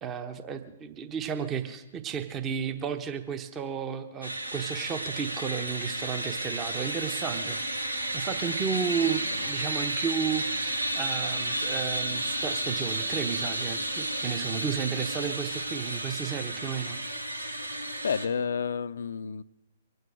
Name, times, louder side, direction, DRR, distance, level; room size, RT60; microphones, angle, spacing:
voice 1, 0.0-7.6 8.1-17.0, right 7 dB, 20° right, 8 dB, 1.0 m, -33 dB
sound 1, 4.2-18.3, right 1 dB, 90° right, 1.4 m, -32 dB
voice 2, 18.0-19.4, left 6 dB, 65° left, 17 dB, 0.5 m, -30 dB
23.5 x 9.3 x 6.3 m, 0.99 s
figure-of-eight pair, 120°, 0 cm